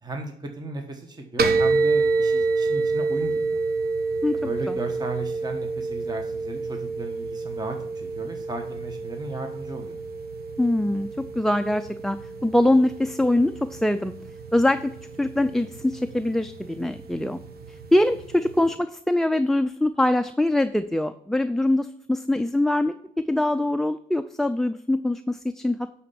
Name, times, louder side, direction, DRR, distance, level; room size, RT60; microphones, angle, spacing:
voice 1, 0.0-3.6 4.4-10.0, right 2 dB, 20° right, 4 dB, 1.2 m, -35 dB
sound 1, 1.4-18.7, right 3 dB, 50° right, 1.0 m, -29 dB
voice 2, 10.6-11.1 11.3-14.1 14.5-14.9 15.2-17.4 17.7-25.8, left 1 dB, ahead, 8 dB, 0.4 m, -23 dB
11.0 x 4.3 x 6.9 m, 0.71 s
cardioid pair, 90°, 20 cm